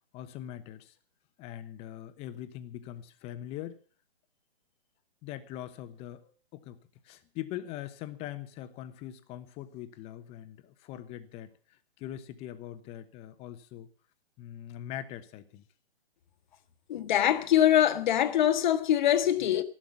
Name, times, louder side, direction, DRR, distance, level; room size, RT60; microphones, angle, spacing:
voice 1, 0.1-1.0 1.4-3.8 5.2-6.8 7.0-13.9 14.4-15.6, left 12 dB, 20° left, 1.0 m, -42 dB
voice 2, 16.9-19.6, left 11 dB, 45° left, 1.5 m, -23 dB
14.5 x 12.0 x 7.2 m
hypercardioid pair, 145°, 32 cm